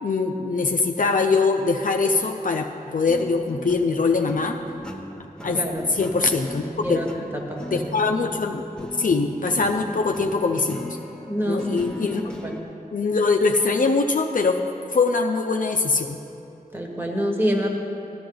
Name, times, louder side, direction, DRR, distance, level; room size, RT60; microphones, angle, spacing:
voice 1, 0.0-4.6 5.4-5.6 5.9-7.0 7.7-11.0 11.5-12.2 12.9-14.6 14.9-16.2, left 4 dB, 60° left, 4 dB, 0.5 m, -22 dB
sound 1, 3.1-12.6, equal, 5° left, 0.9 m, -37 dB
voice 2, 5.5-5.9 6.8-7.1 7.3-7.9 11.3-11.9 12.4-12.5 16.7-17.7, equal, 15° right, 0 dB, 1.5 m, -26 dB
14.0 x 10.0 x 3.9 m, 3.0 s
wide cardioid pair, 75°, 15 cm